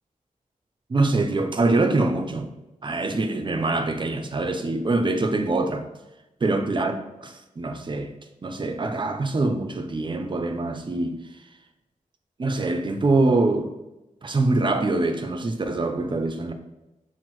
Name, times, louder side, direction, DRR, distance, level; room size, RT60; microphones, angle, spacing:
voice 1, 0.9-2.5 2.8-5.9 6.4-8.1 8.4-11.2 12.4-13.7 14.2-16.5, right 2 dB, 35° right, 0.4 m, -24 dB
6.0 x 2.0 x 3.0 m
wide cardioid pair, 95°, 14 cm